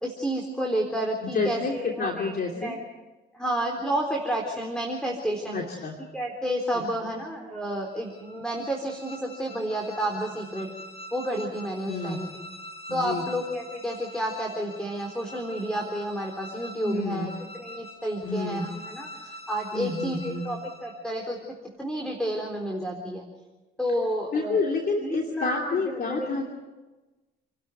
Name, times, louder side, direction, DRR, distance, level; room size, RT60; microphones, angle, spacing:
voice 1, 0.0-2.8 3.3-5.6 6.1-10.7 11.1-12.3 12.9-17.3 17.6-21.4 21.8-23.2 23.8-24.6 25.0-26.4, right 1 dB, 5° left, 1 dB, 4.0 m, -30 dB
voice 2, 1.2-2.8 5.5-5.9 11.9-12.3 12.9-13.2 16.8-17.3 18.2-18.7 19.7-20.5 24.3-26.4, left 3 dB, 50° left, 1 dB, 3.0 m, -29 dB
sound 1, 7.8-21.2, equal, 30° left, 7.2 m, -45 dB
29.0 x 12.5 x 9.4 m, 1.2 s
cardioid pair, 90°, 20 cm